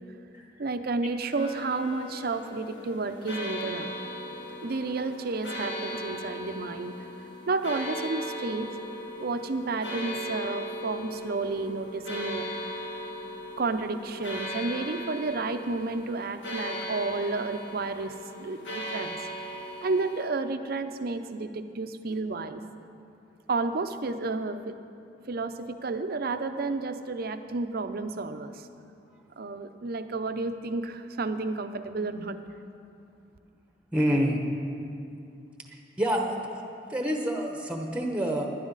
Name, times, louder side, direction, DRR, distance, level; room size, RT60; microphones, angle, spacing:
voice 1, 0.6-3.9 4.6-6.9 7.5-8.7 9.2-12.5 13.6-19.3 19.8-22.6 23.5-24.8 25.3-28.7 29.4-32.4, right 3 dB, 55° right, 9 dB, 0.6 m, -31 dB
sound 1, 1.4-20.3, equal, 75° left, 1.5 m, -38 dB
voice 2, 33.9-34.4 35.7-36.6 36.9-38.5, equal, 5° right, 2 dB, 1.0 m, -27 dB
16.0 x 11.5 x 4.0 m, 2.5 s
head